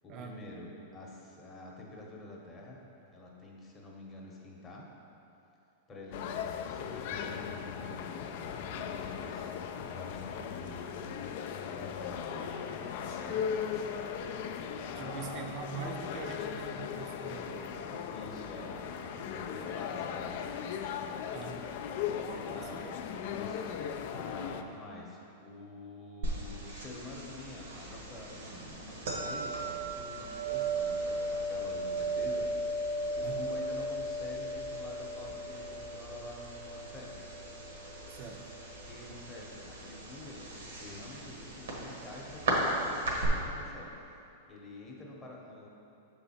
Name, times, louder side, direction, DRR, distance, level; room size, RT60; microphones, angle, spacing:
voice 1, 0.0-2.8 3.1-4.9 5.9-9.6 9.9-10.9 11.5-13.9 14.6-15.5 18.1-21.3 22.5-22.8 23.3-23.7 24.1-32.9 33.2-37.1 38.9-40.5 40.8-43.9 44.5-45.7, left 2 dB, 20° left, -2 dB, 0.9 m, -47 dB
sound 1, 6.1-24.6, left 7 dB, 55° left, 0.3 m, -38 dB
voice 2, 15.0-18.1 21.3-21.6 22.2-23.0 33.2-33.5 38.1-38.5, right 6 dB, 35° right, 3 dB, 0.6 m, -43 dB
sound 2, 26.2-43.3, right 2 dB, 85° right, 1.3 m, -36 dB
6.8 x 3.9 x 4.2 m, 2.8 s
supercardioid pair, 145°, 0 cm